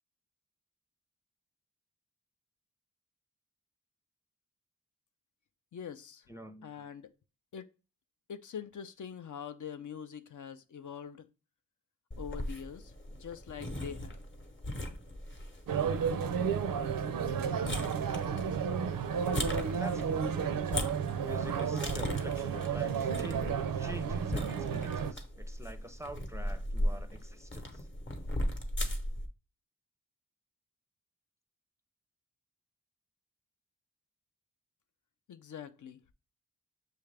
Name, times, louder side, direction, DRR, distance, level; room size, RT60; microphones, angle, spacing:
voice 1, 5.7-6.3 6.6-7.1 7.5-7.7 8.3-11.3 12.2-14.2 35.3-36.0, left 8 dB, 60° left, 0.5 m, -44 dB
voice 2, 6.3-6.7 19.8-20.6 21.2-27.9 28.8-28.9, equal, 10° right, 0.4 m, -46 dB
sound 1, 12.1-29.3, left 1 dB, 35° left, 0.8 m, -39 dB
sound 2, 15.7-25.1, right 7 dB, 80° right, 0.5 m, -32 dB
6.5 x 2.4 x 3.2 m
cardioid pair, 55°, 34 cm